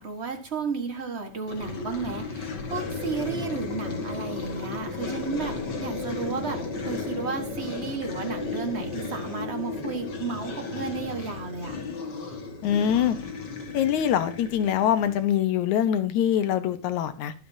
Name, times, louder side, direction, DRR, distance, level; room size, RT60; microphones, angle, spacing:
voice 1, 0.0-11.8, right 4 dB, 40° right, 5 dB, 0.9 m, -33 dB
sound 1, 1.5-15.3, left 3 dB, 40° left, 2.0 m, -34 dB
voice 2, 12.6-13.2 13.7-17.3, left 10 dB, 75° left, 11 dB, 2.3 m, -24 dB
21.0 x 7.0 x 2.8 m, 0.34 s
omnidirectional pair, 3.5 m